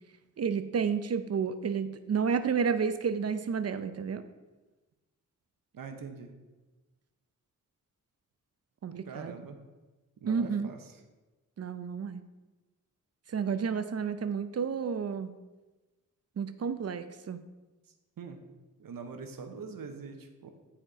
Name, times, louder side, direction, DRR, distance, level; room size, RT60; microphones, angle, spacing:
voice 1, 0.4-4.2 8.8-9.3 10.3-10.7 11.6-12.2 13.3-15.3 16.4-17.4, right 6 dB, 50° right, 11 dB, 0.6 m, -31 dB
voice 2, 5.7-6.3 9.1-9.6 10.2-11.0 18.2-18.4 18.8-20.5, right 5 dB, 90° right, 6 dB, 0.9 m, -43 dB
8.8 x 4.4 x 5.0 m, 1.2 s
wide cardioid pair, 95°, 33 cm